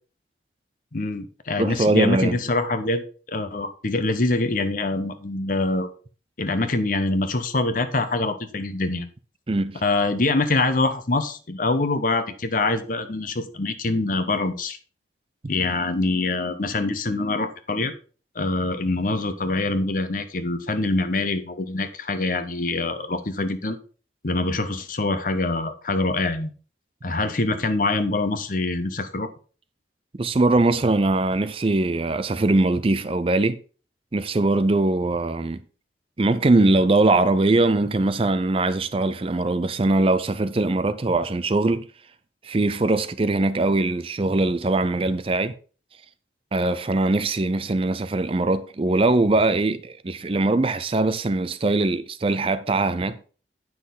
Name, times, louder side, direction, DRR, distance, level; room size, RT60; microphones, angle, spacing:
voice 1, 0.9-5.9 6.4-9.1 9.8-14.8 15.5-17.9 18.3-23.8 24.2-26.5 27.0-29.3, left 2 dB, 50° left, 0.9 m, -24 dB
voice 2, 1.6-2.4 9.5-9.8 30.1-33.6 34.1-35.6 36.2-41.9 42.4-45.5 46.5-53.3, right 2 dB, 30° right, 0.5 m, -21 dB
9.5 x 6.1 x 3.9 m
head